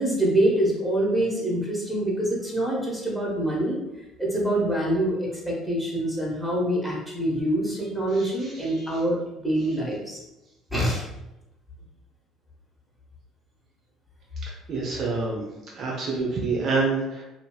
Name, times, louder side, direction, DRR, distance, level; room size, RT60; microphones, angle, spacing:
voice 1, 0.0-3.8 4.2-9.2 9.4-10.2 10.7-11.0, right 1 dB, 5° right, -4 dB, 1.1 m, -25 dB
voice 2, 8.1-9.0 14.4-15.5 15.7-17.2, right 3 dB, 50° right, -3 dB, 0.6 m, -28 dB
2.8 x 2.7 x 2.3 m, 0.95 s
hypercardioid pair, 65°, 0 cm